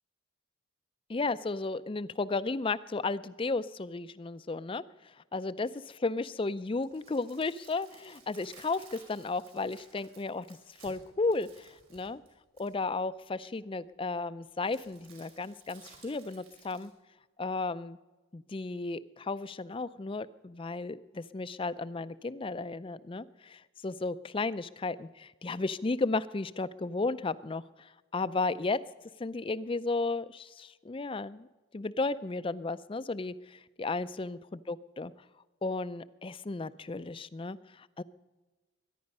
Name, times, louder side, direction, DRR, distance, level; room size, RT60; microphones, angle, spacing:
voice 1, 1.1-4.8 5.3-5.7 6.0-12.2 12.6-16.9 17.4-18.0 18.3-28.8 29.2-31.5 31.7-34.4 34.7-35.1 35.6-38.0, left 3 dB, 25° left, 15 dB, 0.4 m, -34 dB
sound 1, 6.6-12.9 14.6-16.9, right 5 dB, 90° right, 6.1 m, -57 dB
23.0 x 10.5 x 5.4 m, 1.2 s
head